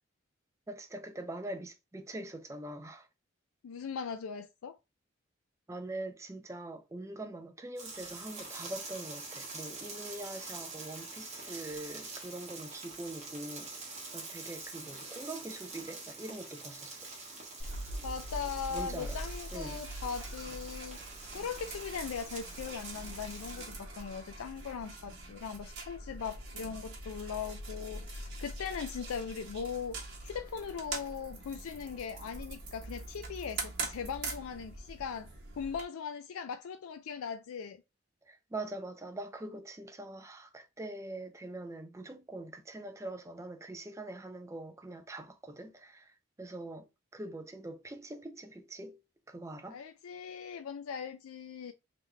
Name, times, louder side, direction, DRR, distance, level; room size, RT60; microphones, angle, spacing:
voice 1, 0.7-3.1 5.7-17.1 18.7-19.2 19.5-19.8 38.2-49.8, right 2 dB, 15° right, 0.4 m, -43 dB
voice 2, 3.6-4.8 18.0-21.0 21.3-35.3 35.6-37.8 49.7-51.7, left 6 dB, 85° left, 0.4 m, -39 dB
sound 1, 7.8-23.7, right 3 dB, 30° right, 1.2 m, -45 dB
sound 2, 17.6-35.8, right 2 dB, 55° right, 1.5 m, -43 dB
3.7 x 3.1 x 3.3 m
head